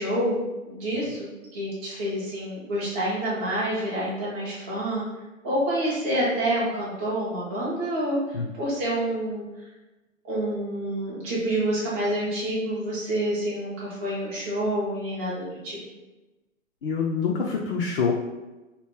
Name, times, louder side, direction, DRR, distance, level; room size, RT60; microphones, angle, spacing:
voice 1, 0.0-5.0 5.4-9.4 10.2-15.8, right 1 dB, 10° right, -7 dB, 0.4 m, -28 dB
voice 2, 16.8-18.1, left 5 dB, 50° left, -2 dB, 0.5 m, -25 dB
2.8 x 2.2 x 3.5 m, 1.1 s
figure-of-eight pair, 125°, 40 cm